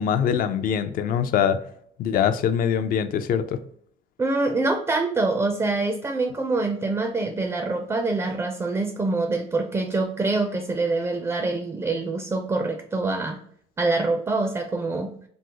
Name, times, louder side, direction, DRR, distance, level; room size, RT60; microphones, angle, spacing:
voice 1, 0.0-1.6 2.0-3.6, left 8 dB, 55° left, 10 dB, 0.4 m, -23 dB
voice 2, 4.2-13.4 13.8-15.2, right 3 dB, 15° right, 5 dB, 0.4 m, -25 dB
3.7 x 2.0 x 2.8 m, 0.63 s
cardioid pair, 110°, 17 cm